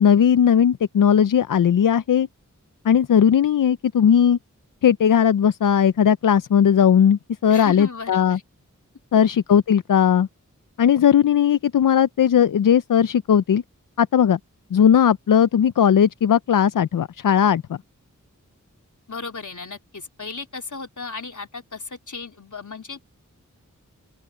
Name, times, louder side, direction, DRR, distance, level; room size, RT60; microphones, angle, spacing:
voice 1, 0.0-2.3 2.8-4.4 4.8-8.4 9.1-10.3 10.8-13.6 14.0-14.4 14.7-17.8, left 8 dB, 85° left, 0.5 m, -17 dB
voice 2, 7.5-8.4 19.1-23.1, left 4 dB, 70° left, 3.6 m, -35 dB
open air
cardioid pair, 45°, 32 cm